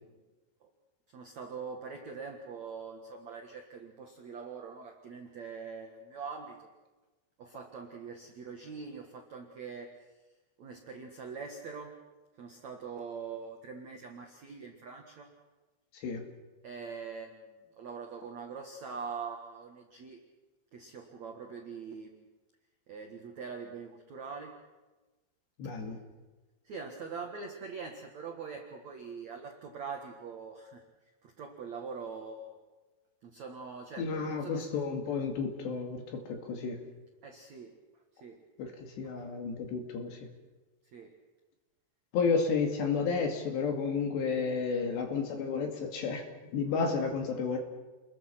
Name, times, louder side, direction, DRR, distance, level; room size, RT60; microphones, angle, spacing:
voice 1, 1.1-6.7 7.4-9.9 10.6-11.9 12.4-15.3 16.6-20.2 20.7-22.2 22.9-24.5 26.6-30.8 31.2-32.6 33.2-34.7 37.2-37.7 38.2-38.4 38.6-38.8 39.0-39.3 40.9-41.1, right 5 dB, 60° right, 3 dB, 1.8 m, -43 dB
voice 2, 25.6-26.0 34.0-36.8 38.6-40.3 42.1-46.2 46.5-47.6, left 5 dB, 65° left, 4 dB, 4.3 m, -32 dB
29.0 x 21.5 x 6.0 m, 1.2 s
omnidirectional pair, 5.7 m